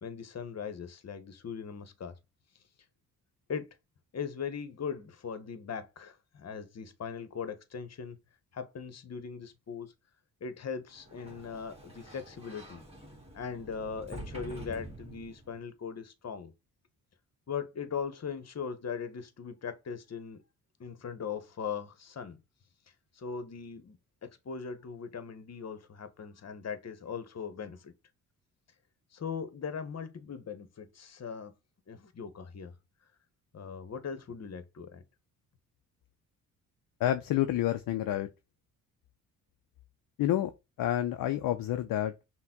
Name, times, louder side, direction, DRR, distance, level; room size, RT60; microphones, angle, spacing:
voice 1, 0.0-2.1 3.5-3.7 4.1-8.2 8.5-9.9 10.4-12.9 13.3-16.5 17.5-20.4 20.8-22.4 23.1-24.0 24.2-27.9 29.1-31.5 31.9-32.7 33.5-35.0, left 6 dB, 35° left, 1.1 m, -39 dB
Sliding door, 10.9-15.7, right 1 dB, 15° right, 1.6 m, -47 dB
voice 2, 37.0-38.3 40.2-40.5 40.8-42.1, left 12 dB, 55° left, 0.6 m, -29 dB
5.6 x 2.3 x 3.7 m
hypercardioid pair, 50°, 42 cm